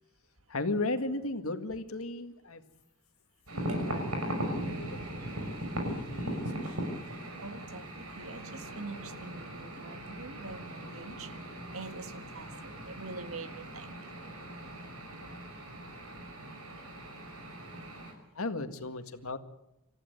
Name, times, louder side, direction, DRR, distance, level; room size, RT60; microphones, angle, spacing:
voice 1, 0.5-2.6 3.5-5.0 5.7-6.7 18.3-19.4, left 2 dB, 70° left, 2.0 m, -36 dB
sound 1, 3.5-18.1, right 1 dB, 85° right, 6.0 m, -39 dB
voice 2, 7.4-11.3 11.7-13.9, right 3 dB, 65° right, 1.9 m, -44 dB
26.5 x 15.0 x 9.4 m
head